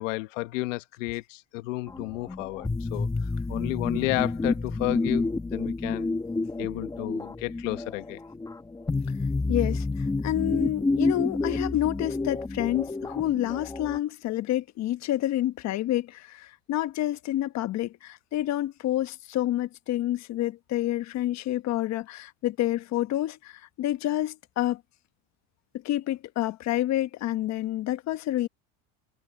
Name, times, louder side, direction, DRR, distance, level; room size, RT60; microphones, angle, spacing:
voice 1, 0.0-6.1 6.6-8.2, left 21 dB, 75° left, 1.3 m, -32 dB
sound 1, 1.9-14.0, left 3 dB, 10° left, 1.3 m, -29 dB
voice 2, 9.5-24.8 25.8-28.5, left 14 dB, 45° left, 1.4 m, -28 dB
supercardioid pair, 110°, 38 cm